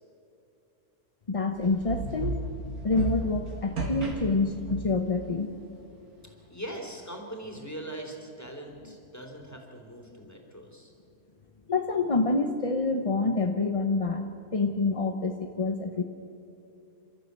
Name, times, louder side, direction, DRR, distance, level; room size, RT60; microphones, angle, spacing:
voice 1, 1.3-2.4 2.8-5.5 8.9-9.0 11.7-14.3 14.5-16.0, left 3 dB, 35° left, 5 dB, 0.6 m, -27 dB
sound 1, 1.6-5.1, right 2 dB, 65° right, 2.6 m, -34 dB
voice 2, 6.5-10.9, right 1 dB, 10° left, 1 dB, 3.0 m, -41 dB
28.5 x 13.0 x 8.1 m, 2.7 s
omnidirectional pair, 1.7 m